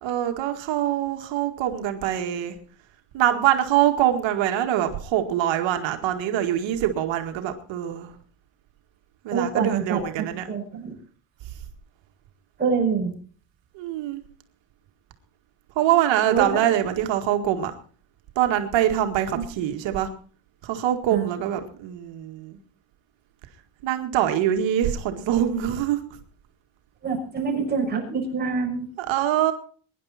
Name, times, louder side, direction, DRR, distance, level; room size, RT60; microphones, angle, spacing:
voice 1, 0.0-2.5 3.1-8.1 9.2-10.5 13.8-14.2 15.8-17.7 18.4-20.1 20.6-22.6 23.8-26.0 29.0-29.5, right 11 dB, 75° right, 5 dB, 2.0 m, -24 dB
voice 2, 9.3-10.0 10.5-10.9 12.6-13.1 16.3-16.6 19.3-19.4 21.1-21.3 27.0-28.8, right 5 dB, 20° right, -1 dB, 6.1 m, -25 dB
23.0 x 10.5 x 4.3 m, 0.43 s
cardioid pair, 170°, 45 cm